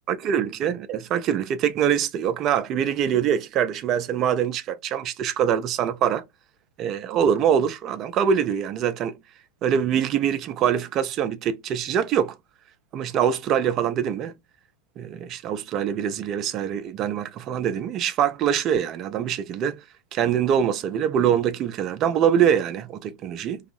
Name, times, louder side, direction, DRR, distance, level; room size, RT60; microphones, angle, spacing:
voice 1, 0.1-6.2 6.8-9.2 9.6-12.3 12.9-14.3 15.0-19.8 20.1-23.6, right 8 dB, 35° right, 0.4 m, -24 dB
2.6 x 2.4 x 2.4 m
figure-of-eight pair, 90°, 0 cm